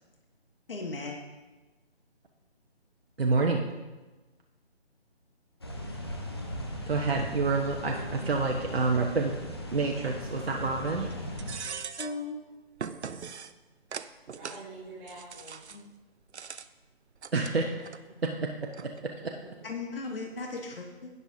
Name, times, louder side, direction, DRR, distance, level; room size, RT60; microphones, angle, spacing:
voice 1, 0.7-1.2 12.0-12.4 15.7-15.8 19.6-21.1, left 3 dB, 55° left, 2 dB, 1.4 m, -37 dB
voice 2, 3.2-3.6 6.9-9.3 9.7-11.1 17.3-17.7 18.4-18.5 18.8-18.9 19.2-19.3, right 4 dB, 65° right, 0 dB, 1.1 m, -27 dB
sound 1, 5.6-11.6, left 1 dB, 25° left, 0.8 m, -38 dB
voice 3, 7.8-8.7 10.9-11.3 14.3-15.6, right 2 dB, 10° right, -9 dB, 2.1 m, -46 dB
sound 2, 10.9-11.1 11.4-12.2 12.8-13.5 13.9-14.6 15.1-15.8 16.3-16.7 17.2-18.0 18.2-18.3 18.7-19.0, right 6 dB, 85° right, 0.7 m, -40 dB
17.0 x 6.8 x 2.8 m, 1.2 s
figure-of-eight pair, 170°, 32 cm